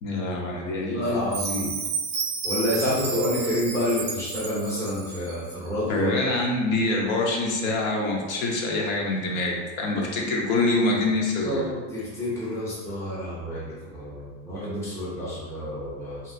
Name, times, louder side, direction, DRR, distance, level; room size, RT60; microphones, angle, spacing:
voice 1, 0.0-1.4 5.9-11.7, left 2 dB, 80° left, -1 dB, 0.8 m, -25 dB
voice 2, 0.8-1.8 2.4-6.1 11.4-16.2, left 1 dB, 5° left, -9 dB, 0.5 m, -28 dB
Chime, 1.3-5.4, right 5 dB, 40° right, 0.5 m, -31 dB
3.0 x 2.8 x 2.5 m, 1.3 s
supercardioid pair, 165°, 39 cm